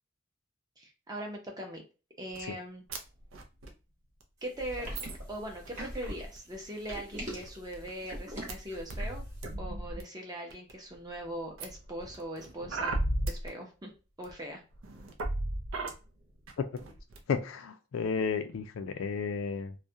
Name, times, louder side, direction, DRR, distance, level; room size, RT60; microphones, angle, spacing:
voice 1, 0.8-1.8 2.2-2.8 4.4-4.9 5.3-9.2 9.6-13.9 14.2-14.6, right 1 dB, 20° right, 1 dB, 0.6 m, -41 dB
sound 1, 2.3-2.4 2.9-3.0 3.2-3.7 4.2-4.3 4.8-6.0 6.4-6.5 6.9-7.0 7.3-7.9 8.5-8.6 8.9-10.0 10.5-11.0 11.6-13.5 14.2-14.3 14.7-15.9 16.5-16.6 16.8-17.2, right 1 dB, 85° right, 0.5 m, -36 dB
sound 2, 4.6-9.3, equal, 35° right, 0.9 m, -41 dB
voice 2, 17.3-19.8, left 5 dB, 80° left, 9 dB, 0.4 m, -32 dB
2.3 x 2.1 x 2.6 m, 0.32 s
head